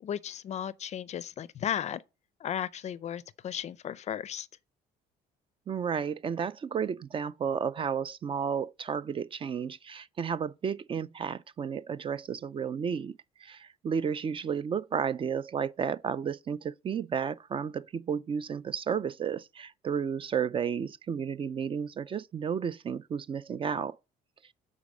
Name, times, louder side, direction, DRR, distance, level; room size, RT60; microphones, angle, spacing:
voice 1, 0.0-2.0 2.4-4.5, left 9 dB, 40° left, 0.4 m, -35 dB
voice 2, 5.7-24.0, right 7 dB, 30° right, 0.3 m, -32 dB
8.4 x 4.1 x 6.2 m
cardioid pair, 110°, 17 cm